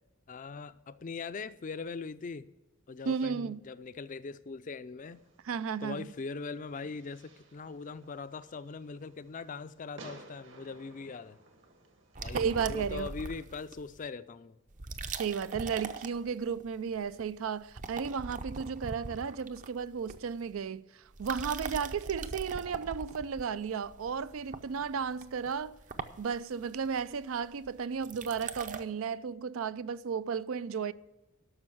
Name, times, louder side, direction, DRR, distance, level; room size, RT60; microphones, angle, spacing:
voice 1, 0.3-2.5 2.9-5.2 5.8-11.4 12.2-14.6, left 4 dB, 40° left, 0.4 m, -41 dB
voice 2, 3.1-3.6 5.4-6.1 12.3-13.1 15.1-20.8 21.2-25.7 26.2-30.9, right 6 dB, 80° right, 0.4 m, -34 dB
Fireworks, 5.0-12.9, right 2 dB, 60° right, 1.5 m, -56 dB
sound 1, 12.2-14.0 14.7-16.7 17.0-17.3 17.6-20.6 21.1-28.8, right 4 dB, 40° right, 0.6 m, -41 dB
12.0 x 6.3 x 7.8 m
head